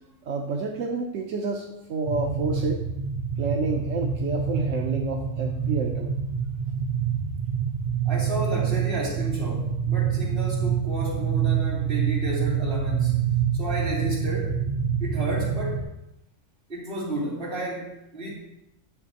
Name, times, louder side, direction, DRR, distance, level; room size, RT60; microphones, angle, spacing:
voice 1, 0.3-2.8 3.4-6.1, right 4 dB, 85° right, 1 dB, 1.2 m, -29 dB
sound 1, 2.1-15.8, right 7 dB, 35° right, 0.8 m, -26 dB
voice 2, 8.0-13.2 13.5-14.5 15.0-15.8 16.7-18.3, right 1 dB, 55° right, -7 dB, 3.1 m, -32 dB
11.5 x 7.0 x 2.9 m, 0.88 s
omnidirectional pair, 1.3 m